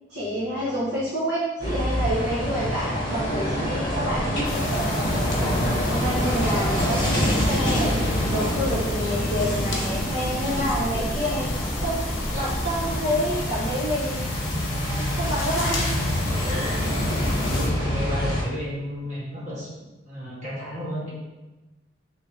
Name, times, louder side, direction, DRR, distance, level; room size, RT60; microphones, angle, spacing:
voice 1, 0.1-11.5 11.8-12.0 12.3-14.3 14.9-15.9 16.4-16.8, equal, 55° right, -9 dB, 0.8 m, -29 dB
sound 1, 1.6-18.4, equal, 25° left, 0.9 m, -26 dB
sound 2, 4.4-17.7, left 3 dB, 75° left, 0.7 m, -36 dB
sound 3, 5.3-13.7, equal, 5° left, 0.3 m, -33 dB
voice 2, 17.4-19.7 20.1-21.1, equal, 35° right, -7 dB, 1.3 m, -32 dB
3.2 x 2.8 x 3.6 m, 1.1 s
head